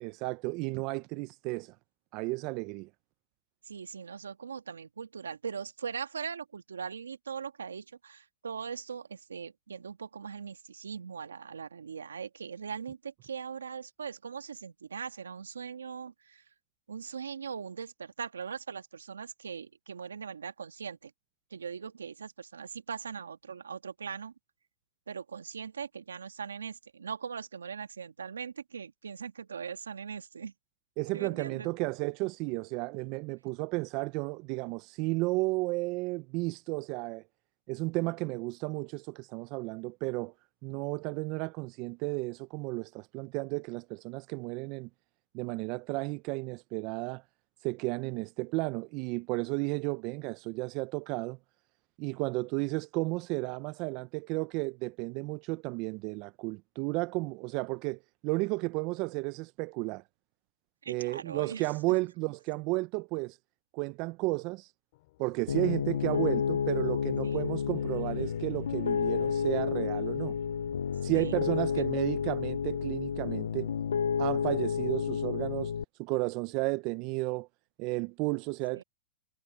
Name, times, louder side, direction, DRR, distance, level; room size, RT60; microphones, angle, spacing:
voice 1, 0.0-1.7 2.1-2.9 31.0-37.2 37.7-40.3 40.6-44.9 45.3-47.2 47.6-51.4 52.0-60.0 60.9-63.4 63.7-64.7 65.2-70.3 71.0-73.7 74.2-75.7 76.0-77.5 77.8-78.8, right 24 dB, 45° right, 0.7 m, -33 dB
voice 2, 3.7-16.4 16.9-21.1 21.5-24.3 25.1-30.5 31.1-31.7 60.8-61.7 67.2-67.4 71.1-71.4 71.8-71.9 78.7-78.8, right 6 dB, 90° right, 2.1 m, -40 dB
sound 1, 64.9-75.1, left 20 dB, 55° left, 7.5 m, -55 dB
Piano, 65.5-75.8, left 7 dB, 80° left, 0.7 m, -31 dB
hypercardioid pair, 115°, 0 cm